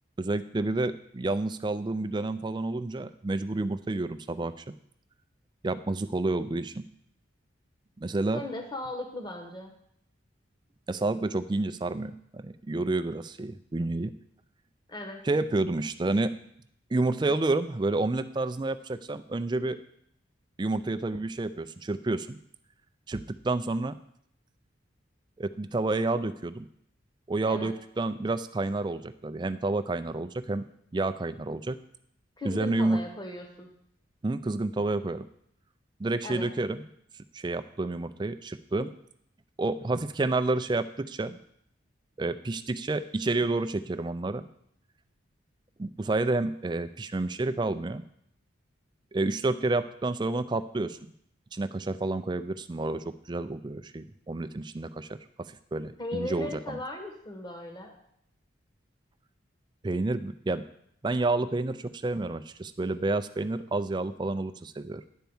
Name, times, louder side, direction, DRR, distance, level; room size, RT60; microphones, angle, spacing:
voice 1, 0.2-4.7 5.6-6.8 8.0-8.4 10.9-14.1 15.2-16.3 16.9-19.8 20.6-22.4 23.1-24.0 25.4-26.7 27.3-30.7 30.9-31.8 32.4-33.0 34.2-35.3 36.0-36.8 37.3-38.9 39.6-41.4 42.2-44.5 45.8-48.0 49.1-51.0 51.5-55.2 55.5-56.8 59.8-60.6 61.0-65.0, right 2 dB, 20° right, 11 dB, 0.3 m, -29 dB
voice 2, 8.3-9.7 14.9-15.2 27.4-27.7 32.4-33.7 36.2-36.5 56.0-57.9, left 1 dB, 20° left, 3 dB, 1.1 m, -37 dB
10.5 x 4.5 x 7.0 m, 0.71 s
head